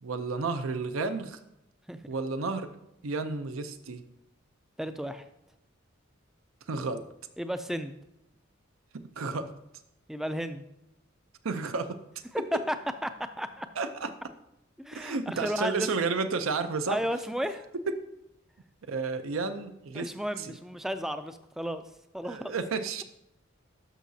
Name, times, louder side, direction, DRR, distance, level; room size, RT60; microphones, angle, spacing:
voice 1, 0.0-1.4 2.1-2.7 3.0-4.0 6.7-7.0 8.9-9.5 11.4-12.0 13.8-14.1 14.9-17.0 18.8-20.1 20.4-20.5 22.2-23.0, right 4 dB, 80° right, 10 dB, 0.6 m, -31 dB
voice 2, 4.8-5.3 7.4-7.9 10.1-10.6 12.3-12.8 13.0-13.7 14.8-15.9 16.9-17.6 19.9-21.8 22.1-22.6, equal, ahead, 10 dB, 0.3 m, -33 dB
12.5 x 5.7 x 2.7 m, 0.84 s
head